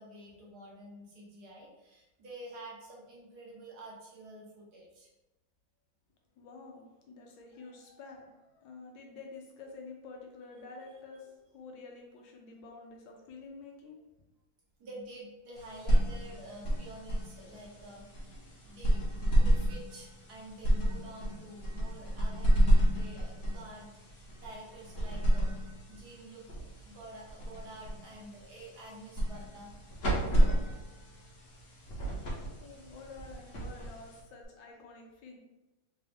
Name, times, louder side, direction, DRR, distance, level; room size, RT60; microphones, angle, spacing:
voice 1, 0.0-5.1 10.5-11.0 14.8-25.5 25.9-26.5 26.8-29.7, right 1 dB, 60° right, -3 dB, 1.3 m, -49 dB
voice 2, 6.4-14.0 32.6-35.4, left 4 dB, 90° left, 1 dB, 1.5 m, -49 dB
sound 1, 15.6-34.4, right 1 dB, 50° left, 1.0 m, -31 dB
3.9 x 2.5 x 3.2 m, 1.0 s
omnidirectional pair, 2.1 m